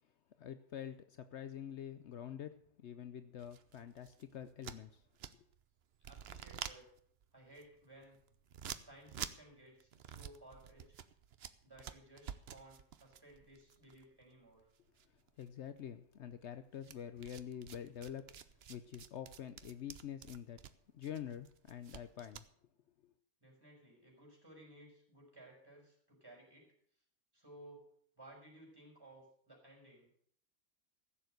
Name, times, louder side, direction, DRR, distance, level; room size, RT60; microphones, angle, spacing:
voice 1, 0.4-5.0 5.3-5.4 15.4-18.3 18.7-20.6 20.9-22.4, left 9 dB, 65° left, 11 dB, 1.0 m, -46 dB
sound 1, 3.4-5.6 5.9-14.7 15.0-15.8 16.8-22.5, right 8 dB, 60° right, 0.9 m, -49 dB
voice 2, 6.1-6.8 7.3-8.2 8.8-11.0 11.6-14.7 23.4-26.7 27.3-27.8 28.2-30.1, right 1 dB, 20° right, -2 dB, 5.9 m, -58 dB
15.0 x 7.3 x 7.9 m, 0.64 s
omnidirectional pair, 1.3 m